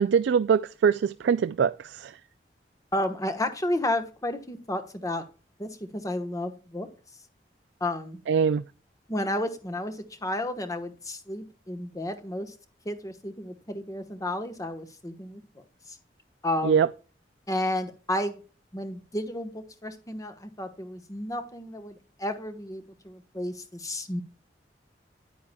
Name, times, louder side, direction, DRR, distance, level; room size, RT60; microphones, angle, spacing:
voice 1, 0.0-2.1 8.3-8.6 16.6-16.9, right 6 dB, 85° right, 0.3 m, -23 dB
voice 2, 2.9-5.2 5.6-6.9 7.8-8.2 9.1-12.5 12.8-15.4 16.4-16.8 17.5-18.4 18.7-24.2, left 1 dB, 20° left, 1.1 m, -32 dB
9.8 x 9.4 x 2.2 m
head